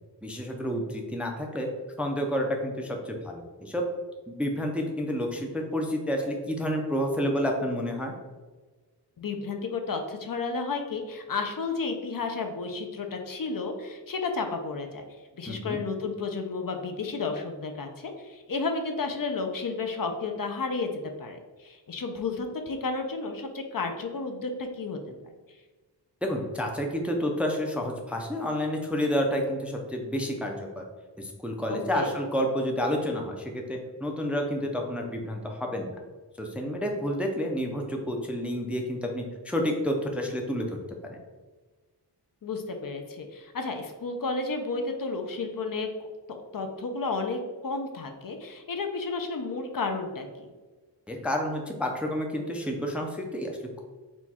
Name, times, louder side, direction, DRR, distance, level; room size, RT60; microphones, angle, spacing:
voice 1, 0.2-1.7 2.0-3.8 4.3-8.1 15.5-15.8 26.2-30.8 31.2-35.9 36.4-40.7 41.0-41.2 51.1-53.8, equal, 5° right, 1 dB, 0.4 m, -30 dB
voice 2, 9.2-15.0 15.3-20.9 21.2-25.0 31.7-32.1 42.4-45.9 46.3-50.5, left 4 dB, 50° left, 5 dB, 0.5 m, -32 dB
4.4 x 2.3 x 4.1 m, 1.3 s
wide cardioid pair, 110°, 43 cm